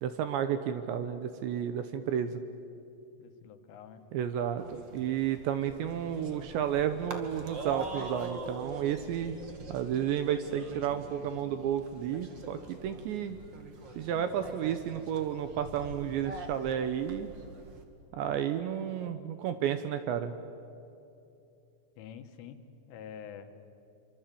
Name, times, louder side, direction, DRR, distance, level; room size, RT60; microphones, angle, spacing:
voice 1, 0.0-2.4 4.1-9.4 9.7-13.4 14.0-17.3 18.1-20.4, right 9 dB, 75° right, 10 dB, 2.8 m, -32 dB
voice 2, 3.2-4.0 22.0-22.6 22.9-23.5, left 8 dB, 75° left, 8 dB, 3.8 m, -46 dB
sound 1, 4.6-17.8, right 3 dB, 50° right, 1.3 m, -44 dB
26.0 x 25.5 x 8.6 m, 2.8 s
omnidirectional pair, 6.0 m